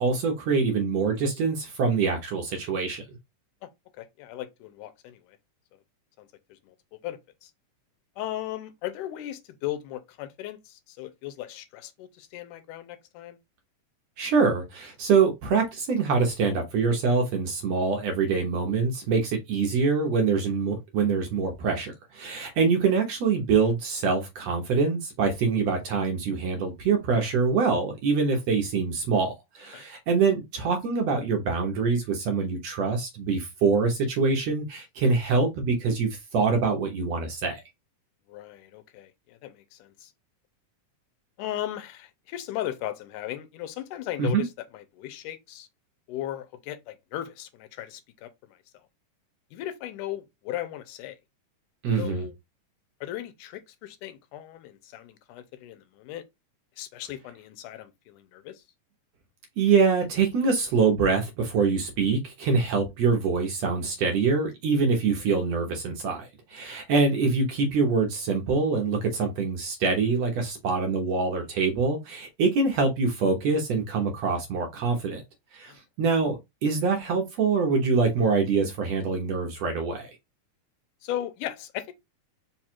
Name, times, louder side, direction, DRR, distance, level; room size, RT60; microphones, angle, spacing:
voice 1, 0.0-3.0 14.2-37.6 44.2-44.4 51.8-52.3 59.6-75.2 75.5-75.7 76.0-80.1, right 4 dB, 65° right, 1.8 m, -25 dB
voice 2, 4.0-5.4 6.2-7.5 8.2-13.4 29.7-29.8 38.3-40.1 41.4-45.7 46.1-48.6 49.5-51.2 52.0-52.3 53.0-56.2 56.8-58.6 75.7-75.8 81.0-81.9, left 12 dB, 85° left, 2.2 m, -37 dB
5.0 x 2.3 x 4.4 m
omnidirectional pair, 3.6 m